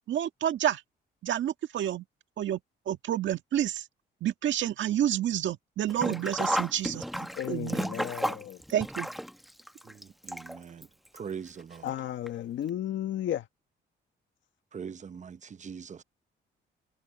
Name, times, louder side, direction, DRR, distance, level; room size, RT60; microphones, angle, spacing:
voice 1, 0.1-0.8 1.2-2.0 2.4-2.6 2.8-3.9 4.2-7.9 8.7-9.1, right 11 dB, 70° right, 1.8 m, -29 dB
Sink (filling or washing), 5.9-10.8 11.1-11.2 12.3-12.4 12.7-12.8, equal, ahead, 1.0 m, -33 dB
voice 2, 7.3-8.6 11.8-13.5, left 11 dB, 70° left, 1.6 m, -34 dB
voice 3, 9.8-10.9 11.1-11.9 14.7-16.0, right 7 dB, 35° right, 0.8 m, -42 dB
cardioid pair, 90°, 20 cm